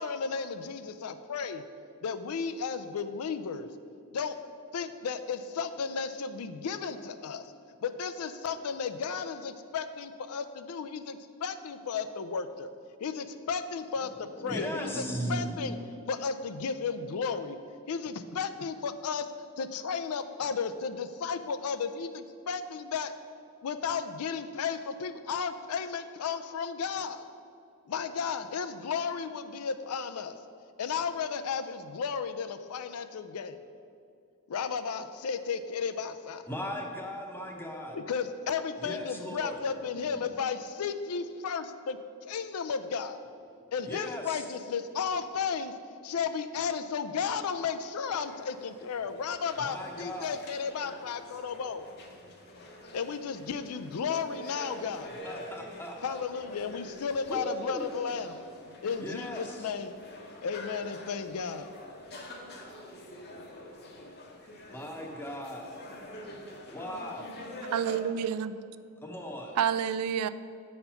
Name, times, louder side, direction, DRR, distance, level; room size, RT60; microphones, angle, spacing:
voice 1, 0.0-1.6 2.0-3.7 4.1-4.4 4.7-7.4 7.8-12.7 13.0-15.8 16.1-17.6 17.9-19.3 19.6-23.1 23.6-27.3 27.9-30.4 30.8-33.6 34.5-36.4 37.9-43.2 43.7-45.7 46.0-51.9 52.9-55.1 56.0-58.4 58.8-59.9 60.4-61.7, left 6 dB, 80° left, 10 dB, 0.4 m, -34 dB
voice 2, 14.0-15.9 36.5-38.0 38.8-40.2 43.5-44.5 49.6-50.4 55.2-56.2 57.3-57.8 59.0-59.7 64.6-65.7 66.7-67.3 69.0-69.6, equal, 10° left, 1 dB, 0.8 m, -38 dB
sound 1, 48.1-68.0, left 1 dB, 50° left, 0.9 m, -46 dB
voice 3, 67.7-68.5 69.6-70.3, right 8 dB, 85° right, 15 dB, 0.3 m, -28 dB
7.8 x 4.3 x 5.6 m, 2.4 s
head